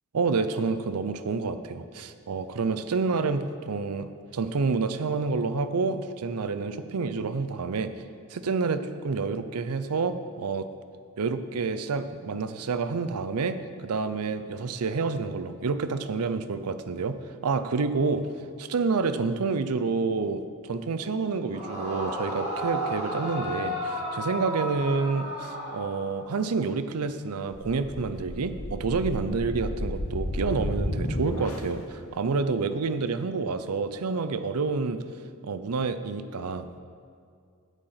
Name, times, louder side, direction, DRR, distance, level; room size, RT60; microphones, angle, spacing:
voice 1, 0.1-7.9 8.3-10.7 11.2-13.6 13.8-17.1 17.4-18.2 18.6-35.0 35.4-36.8, right 4 dB, 90° right, 11 dB, 0.5 m, -28 dB
Yell / Screaming, 21.5-26.4, equal, 30° right, 3.0 m, -33 dB
sound 1, 27.5-31.8, left 1 dB, 75° left, 1.0 m, -32 dB
8.4 x 8.2 x 5.7 m, 2.3 s
head